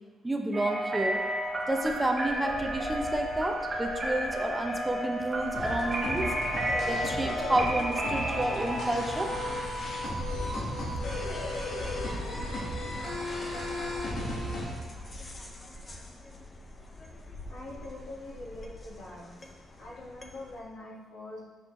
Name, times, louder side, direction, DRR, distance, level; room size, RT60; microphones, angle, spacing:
voice 1, 0.2-1.2 1.7-6.3 6.8-9.3, right 1 dB, 15° right, 3 dB, 0.6 m, -30 dB
sound 1, 0.5-8.9, right 1 dB, 30° right, 1.1 m, -32 dB
sound 2, 1.0-20.6, left 1 dB, 30° left, 0.7 m, -44 dB
sound 3, 5.5-14.7, left 1 dB, 55° left, 1.5 m, -34 dB
voice 2, 17.5-19.5 19.8-21.4, left 2 dB, 80° left, -5 dB, 1.6 m, -44 dB
5.9 x 5.7 x 3.1 m, 1.3 s
cardioid pair, 90°, 0 cm